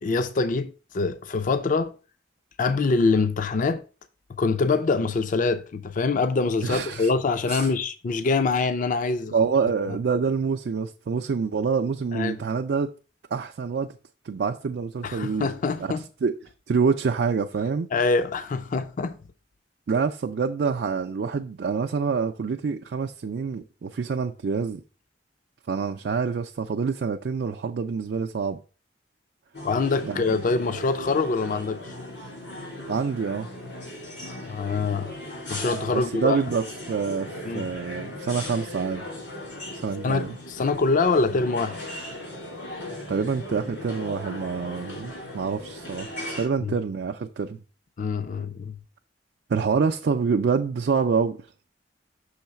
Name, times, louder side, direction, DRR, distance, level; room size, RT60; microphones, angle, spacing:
voice 1, 0.0-2.0 2.6-3.8 4.4-9.3 9.9-10.0 12.1-12.4 15.0-16.0 17.9-19.2 29.6-32.0 34.5-35.1 35.5-36.4 37.5-37.7 40.0-41.8 46.6-46.7 48.0-48.8, left 4 dB, 50° left, 0.4 m, -24 dB
voice 2, 6.6-7.1 7.5-7.7 9.3-12.9 13.3-14.0 14.2-15.5 15.8-15.9 16.2-16.4 16.7-17.9 19.9-24.8 25.7-28.6 30.0-30.4 32.9-33.5 35.9-39.1 39.7-40.4 43.1-46.1 46.4-47.6 49.5-51.4, right 5 dB, 65° right, 0.4 m, -26 dB
sound 1, 29.5-46.5, left 1 dB, 80° left, 2.9 m, -38 dB
6.4 x 3.1 x 5.8 m
head